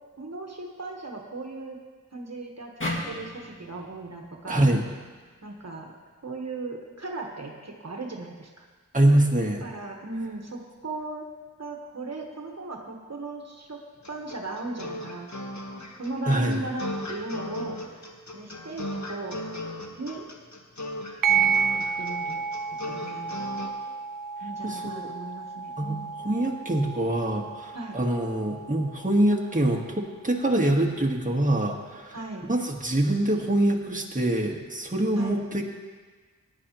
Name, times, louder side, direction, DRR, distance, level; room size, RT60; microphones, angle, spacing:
voice 1, 0.2-1.8 2.1-4.7 5.4-5.9 6.2-8.6 9.6-11.3 11.6-13.8 14.1-15.3 16.0-18.1 18.3-19.4 20.0-20.3 21.3-21.5 22.0-22.4 22.9-23.5 24.4-26.1 27.7-28.0 32.1-32.5 35.2-35.4, right 2 dB, 55° right, 1 dB, 1.3 m, -37 dB
sound 1, 2.8-6.0, left 1 dB, 40° left, 2.1 m, -37 dB
voice 2, 4.5-4.8 8.9-9.6 16.3-16.6 24.6-25.1 25.8-32.2 32.5-35.6, right 1 dB, 25° right, 0 dB, 1.5 m, -24 dB
sound 2, 14.0-23.7, left 1 dB, 60° left, 1.4 m, -36 dB
sound 3, 21.2-30.2, right 6 dB, 80° right, 0.5 m, -31 dB
17.5 x 10.0 x 3.0 m, 1.4 s
wide cardioid pair, 45°, 32 cm